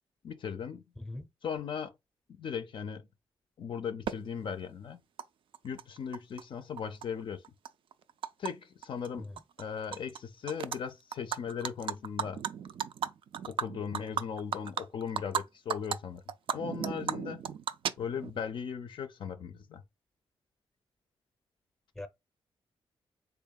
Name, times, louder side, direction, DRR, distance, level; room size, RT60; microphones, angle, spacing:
voice 1, 0.2-0.8 1.4-1.9 2.3-3.0 3.6-5.0 5.6-7.4 8.4-9.3 9.6-12.4 13.4-16.2 16.5-17.4 18.0-19.8, left 7 dB, 55° left, 0.4 m, -38 dB
voice 2, 1.0-1.2 9.2-9.4 22.0-22.1, left 2 dB, 5° left, 0.6 m, -41 dB
Animal, 4.1-4.2 5.2-5.3 5.5-6.4 6.8-8.5 8.8-9.1 9.4-10.2 10.5-10.8 11.1-15.4 15.7-16.0 16.3-18.4, right 8 dB, 60° right, 0.3 m, -35 dB
3.5 x 3.4 x 2.3 m
wide cardioid pair, 125°, 10 cm